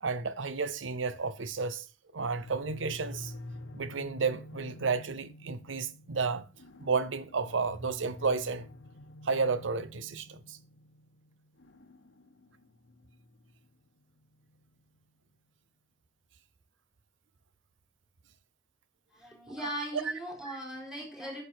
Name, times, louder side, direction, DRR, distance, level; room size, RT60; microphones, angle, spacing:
voice 1, 0.0-1.8 2.1-3.3 3.7-6.4 6.8-8.7 9.2-10.6 19.6-19.7, right 4 dB, 75° right, 0.8 m, -32 dB
sound 1, 2.3-15.1, left 1 dB, 70° left, 1.0 m, -49 dB
voice 2, 19.1-21.4, right 1 dB, 5° right, 4.2 m, -39 dB
9.9 x 6.8 x 4.5 m
head